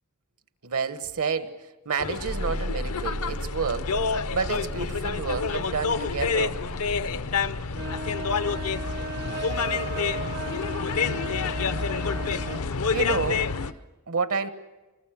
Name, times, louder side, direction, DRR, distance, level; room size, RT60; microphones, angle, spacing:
voice 1, 0.6-1.6 1.8-3.9 4.3-6.6 12.9-13.5 14.1-14.5, right 5 dB, 70° right, 1.4 m, -29 dB
sound 1, 2.0-13.7, left 5 dB, 70° left, 0.7 m, -28 dB
sound 2, 2.2-9.1, equal, 85° right, 4.6 m, -37 dB
sound 3, 7.7-12.7, right 4 dB, 45° right, 0.8 m, -36 dB
25.0 x 20.5 x 7.5 m
head